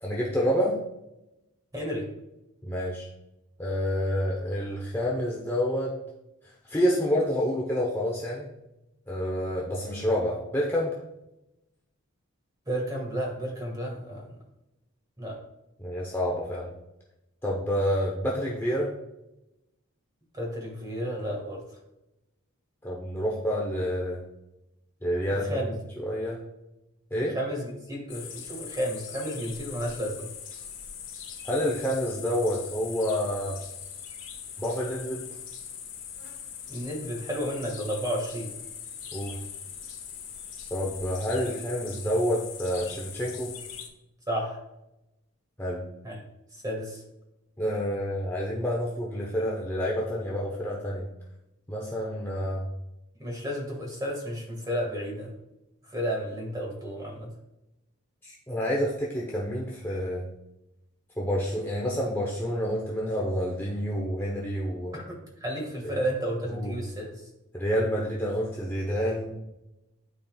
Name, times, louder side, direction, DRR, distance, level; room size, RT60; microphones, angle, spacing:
voice 1, 0.0-0.8 2.6-3.1 3.6-5.9 6.6-8.5 9.1-11.0 15.8-16.7 17.4-18.9 22.8-24.2 25.0-25.6 26.0-26.4 27.1-27.4 31.4-33.6 34.6-35.3 39.1-39.4 40.7-43.5 45.6-45.8 47.6-51.1 51.7-52.7 58.2-60.3 61.2-65.0 66.5-66.8 67.5-69.4, equal, 10° left, -4 dB, 0.8 m, -28 dB
voice 2, 1.7-2.0 12.7-14.2 15.2-15.3 20.4-21.6 25.4-25.8 27.3-30.3 36.7-38.5 44.3-44.6 46.0-46.2 46.6-47.0 53.2-55.3 55.9-57.3 64.9-65.0 65.4-67.2, equal, 15° right, -1 dB, 1.7 m, -32 dB
sound 1, 28.1-43.9, left 8 dB, 65° left, 1.5 m, -41 dB
12.0 x 4.3 x 2.4 m, 0.91 s
head